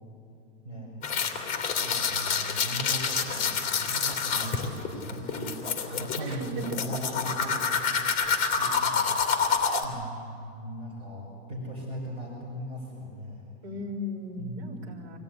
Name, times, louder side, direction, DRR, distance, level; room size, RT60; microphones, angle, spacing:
voice 1, 0.6-1.0 1.8-8.3 8.6-9.1 9.8-13.5 14.4-14.8, equal, 15° right, -6 dB, 5.5 m, -39 dB
sound 1, 1.0-9.8, left 6 dB, 20° left, 2.5 m, -28 dB
voice 2, 6.2-6.8 8.6-8.9 13.6-15.2, equal, 60° right, 5 dB, 5.5 m, -37 dB
25.0 x 17.5 x 9.6 m, 2.5 s
supercardioid pair, 165°, 37 cm